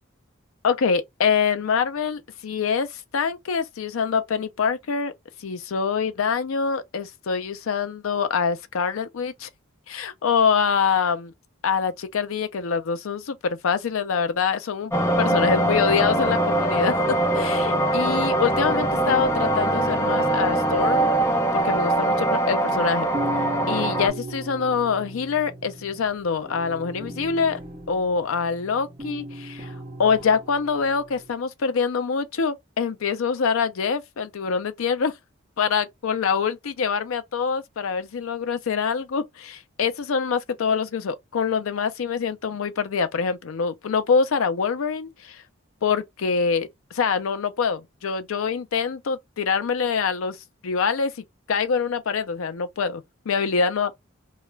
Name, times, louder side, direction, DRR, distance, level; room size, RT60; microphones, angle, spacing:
voice 1, 0.6-5.1 5.4-9.5 9.9-11.3 11.6-14.9 15.2-16.9 17.3-21.1 21.5-23.1 23.7-27.6 27.9-29.7 30.0-35.2 35.6-45.4 45.8-50.4 50.6-51.1 51.5-53.9, left 6 dB, 75° left, 0.4 m, -25 dB
sound 1, 14.9-24.1, right 1 dB, 15° left, 0.6 m, -22 dB
sound 2, 23.1-31.3, right 1 dB, 20° right, 0.9 m, -37 dB
2.3 x 2.1 x 3.0 m
head